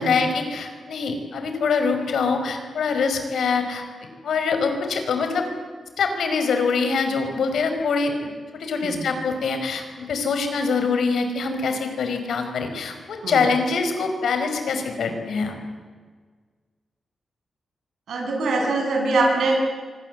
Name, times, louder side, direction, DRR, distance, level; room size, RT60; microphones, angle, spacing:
voice 1, 0.0-3.8 4.2-5.5 6.0-8.1 8.5-15.5, left 5 dB, 80° left, 6 dB, 5.1 m, -24 dB
voice 2, 18.1-19.6, right 3 dB, 85° right, 0 dB, 7.4 m, -23 dB
26.0 x 25.5 x 8.1 m, 1.6 s
wide cardioid pair, 170°, 0 cm